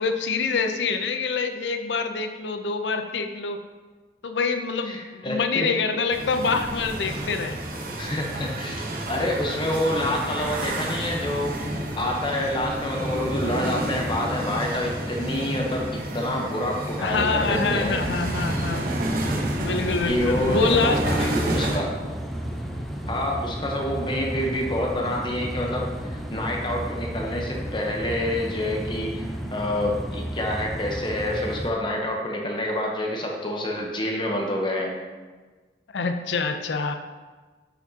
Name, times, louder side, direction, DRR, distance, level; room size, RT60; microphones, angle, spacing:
voice 1, 0.0-3.6 4.2-7.6 17.0-18.9 19.6-21.3 35.9-36.9, left 4 dB, 85° left, 7 dB, 0.5 m, -26 dB
voice 2, 4.9-5.7 8.0-11.6 12.0-15.9 16.1-18.0 20.0-22.0 23.1-35.0, left 1 dB, 25° left, 0 dB, 0.8 m, -27 dB
sound 1, 6.1-21.8, right 1 dB, 55° right, 1.0 m, -30 dB
sound 2, 17.1-31.7, equal, ahead, 0.5 m, -33 dB
8.8 x 4.9 x 2.8 m, 1.3 s
head